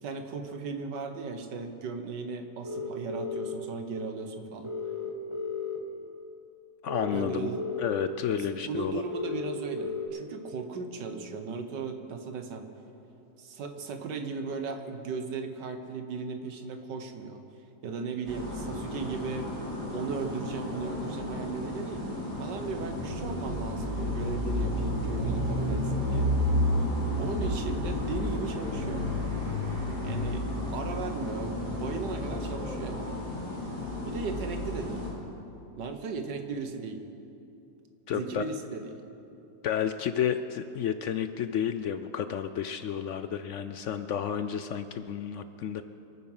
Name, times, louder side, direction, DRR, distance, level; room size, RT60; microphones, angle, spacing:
voice 1, 0.0-4.7 7.1-7.6 8.5-12.6 13.4-17.4 17.8-19.5 19.9-22.0 22.4-26.3 27.2-29.1 30.0-33.2 34.0-35.0 35.8-37.0 38.1-39.0, right 4 dB, 90° right, 6 dB, 1.8 m, -36 dB
sound 1, 2.6-3.5 4.6-5.8 6.9-8.0 9.1-10.1, left 6 dB, 15° left, 2.3 m, -34 dB
voice 2, 6.8-7.5 7.8-9.0 38.1-38.4 39.6-45.8, left 8 dB, 75° left, 10 dB, 0.6 m, -31 dB
sound 2, 18.3-35.1, left 1 dB, 70° right, 4.4 m, -31 dB
26.0 x 9.6 x 5.6 m, 2.9 s
omnidirectional pair, 1.8 m